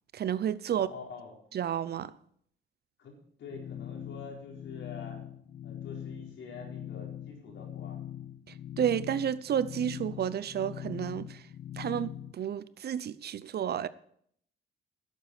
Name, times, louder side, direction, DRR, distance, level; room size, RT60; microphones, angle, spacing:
voice 1, 0.1-0.9 1.5-2.1 8.8-11.4 11.8-13.9, right 9 dB, 55° right, 0.6 m, -31 dB
voice 2, 0.7-1.4 3.0-5.2 5.6-8.0, left 4 dB, 70° left, 4.4 m, -46 dB
sound 1, 3.5-12.3, left 11 dB, 45° left, 0.8 m, -42 dB
11.5 x 8.2 x 6.7 m
cardioid pair, 90°, 20 cm